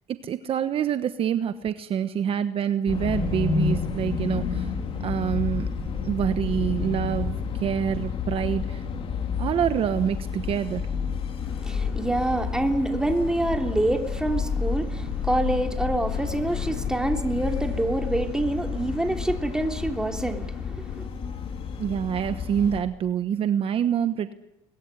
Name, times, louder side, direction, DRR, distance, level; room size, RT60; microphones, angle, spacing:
voice 1, 0.2-4.7 5.0-8.8 9.4-10.8 21.8-24.3, right 9 dB, 45° right, 10 dB, 1.2 m, -26 dB
sound 1, 2.9-22.8, left 6 dB, 45° left, 4.2 m, -30 dB
voice 2, 11.4-21.1, right 1 dB, 5° right, 3 dB, 3.1 m, -26 dB
23.5 x 21.0 x 9.9 m, 0.92 s
cardioid pair, 110°, 13 cm